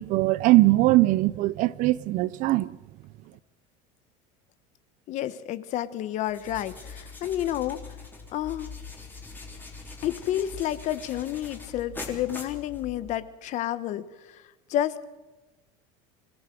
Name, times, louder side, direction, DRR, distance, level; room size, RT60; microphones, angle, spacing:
voice 1, 0.0-2.8, right 18 dB, 45° right, 0.6 m, -21 dB
voice 2, 5.1-7.9 8.3-8.7 10.0-14.4 14.7-15.0, left 12 dB, 45° left, 1.2 m, -30 dB
sound 1, 6.2-13.2, left 4 dB, 10° left, 3.5 m, -42 dB
26.0 x 17.0 x 7.7 m
cardioid pair, 155°, 18 cm